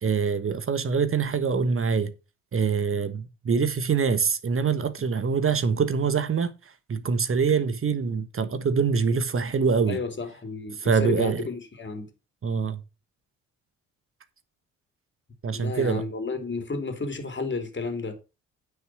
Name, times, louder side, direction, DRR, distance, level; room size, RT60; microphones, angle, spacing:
voice 1, 0.0-2.1 2.5-6.5 6.9-10.0 10.8-11.4 12.4-12.8 15.4-16.0, right 5 dB, 35° right, 1.3 m, -24 dB
voice 2, 9.9-12.1 15.5-18.2, left 4 dB, 30° left, 3.4 m, -32 dB
9.4 x 6.0 x 6.1 m
hypercardioid pair, 50°, 36 cm